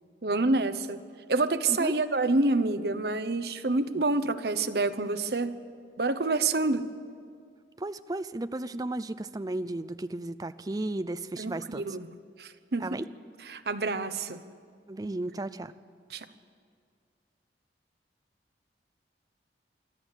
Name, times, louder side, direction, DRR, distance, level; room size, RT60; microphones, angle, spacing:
voice 1, 0.2-1.0 1.3-5.6 6.0-6.9 11.4-12.1 12.4-13.0 13.5-14.4 16.1-16.3, right 3 dB, 60° right, 11 dB, 0.9 m, -27 dB
voice 2, 7.8-12.0 12.8-13.1 14.9-15.7, right 2 dB, 20° right, 13 dB, 0.4 m, -34 dB
24.5 x 13.0 x 8.1 m, 2.2 s
head